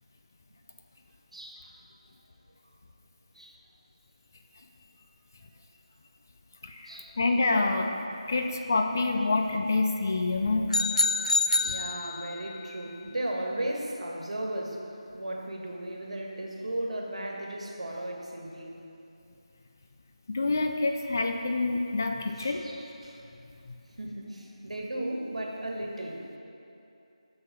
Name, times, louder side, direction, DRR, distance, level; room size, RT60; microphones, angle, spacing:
voice 1, 1.3-1.8 3.3-3.6 6.8-7.2 11.6-14.8 15.1-18.8 22.3-23.2 24.0-26.2, right 1 dB, 70° right, 0 dB, 1.6 m, -36 dB
voice 2, 7.2-7.9 8.3-10.7 20.3-22.6, left 3 dB, 25° left, 4 dB, 0.4 m, -27 dB
sound 1, 10.7-12.5, left 3 dB, 90° left, 0.4 m, -26 dB
7.5 x 6.1 x 5.9 m, 2.7 s
figure-of-eight pair, 175°, 4 cm